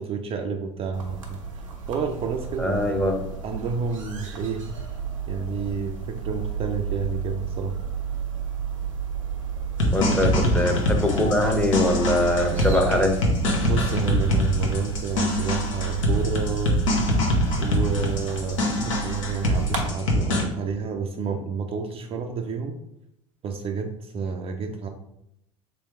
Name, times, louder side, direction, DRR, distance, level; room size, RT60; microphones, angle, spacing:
voice 1, 0.0-4.6 5.3-7.8 10.1-10.2 13.6-16.7 17.6-22.8 23.4-24.9, right 5 dB, 35° right, 4 dB, 0.4 m, -30 dB
sound 1, 0.9-19.8, right 7 dB, 85° right, 0.7 m, -32 dB
voice 2, 2.6-3.1 9.9-13.1, left 1 dB, 10° left, 3 dB, 0.7 m, -22 dB
sound 2, 9.8-20.4, left 1 dB, 75° left, 0.9 m, -24 dB
3.3 x 2.9 x 3.5 m, 0.80 s
hypercardioid pair, 75°, 16 cm